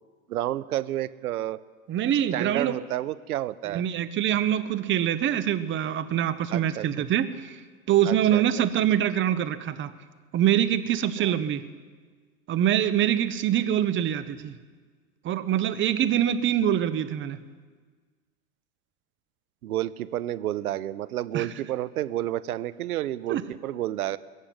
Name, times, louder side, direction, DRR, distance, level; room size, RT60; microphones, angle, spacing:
voice 1, 0.3-1.6 2.3-3.8 6.5-6.9 8.0-8.4 11.2-11.3 19.6-24.2, right 13 dB, 80° right, 16 dB, 0.7 m, -30 dB
voice 2, 1.9-2.8 3.7-7.6 7.9-9.9 10.3-11.6 12.5-14.6 15.2-17.4 21.3-21.5 23.3-23.4, right 10 dB, 25° right, 13 dB, 0.8 m, -24 dB
21.5 x 7.5 x 8.1 m, 1.5 s
hypercardioid pair, 95°, 44 cm